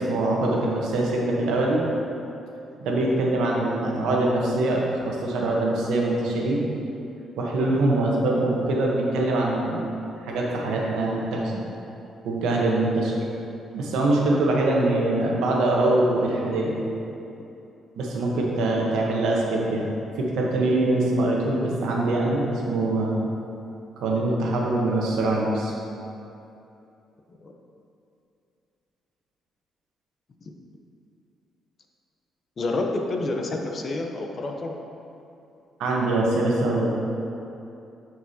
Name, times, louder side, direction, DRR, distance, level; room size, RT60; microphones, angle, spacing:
voice 1, 0.0-1.8 2.8-6.6 7.4-9.8 10.2-11.6 12.2-13.1 13.7-16.7 17.9-19.9 20.2-23.1 24.0-25.7 35.8-37.0, right 2 dB, 85° right, -2 dB, 1.0 m, -23 dB
voice 2, 32.6-34.7, left 2 dB, 45° left, 2 dB, 0.8 m, -28 dB
9.6 x 4.7 x 2.8 m, 2.8 s
cardioid pair, 90°, 0 cm